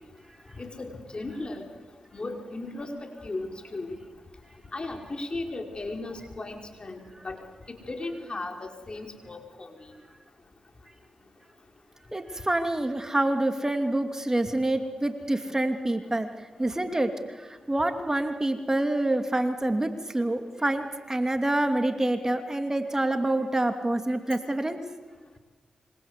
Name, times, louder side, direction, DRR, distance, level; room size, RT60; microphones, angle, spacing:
voice 1, 0.6-1.6 2.1-4.0 4.7-7.4 7.7-9.7, left 2 dB, 45° left, 4 dB, 5.5 m, -36 dB
voice 2, 12.1-16.3 16.6-24.8, right 1 dB, 20° right, 7 dB, 2.8 m, -27 dB
27.5 x 24.5 x 8.4 m, 1.3 s
supercardioid pair, 40°, 2 cm